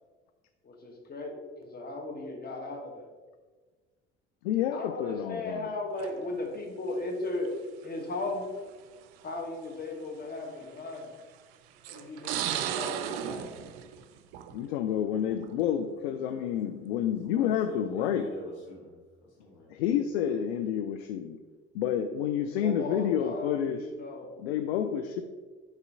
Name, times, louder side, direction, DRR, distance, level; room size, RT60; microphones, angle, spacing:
voice 1, 0.6-3.1 4.7-7.5 7.8-8.5 9.2-11.1 11.9-13.5 22.6-24.3, left 2 dB, 30° left, 1 dB, 1.4 m, -36 dB
voice 2, 4.4-5.7 14.5-18.3 19.7-21.4 21.7-23.9 24.4-25.2, left 9 dB, 65° left, 7 dB, 0.5 m, -29 dB
sound 1, 6.0-6.4 7.4-7.5 8.7-8.8 9.2-9.3 10.8-11.1 11.8-14.7 15.1-15.5, right 10 dB, 65° right, 0.5 m, -35 dB
voice 3, 17.2-19.0 19.4-19.7, left 2 dB, 85° left, -5 dB, 1.7 m, -44 dB
6.6 x 3.0 x 5.5 m, 1.4 s
figure-of-eight pair, 55°, 33 cm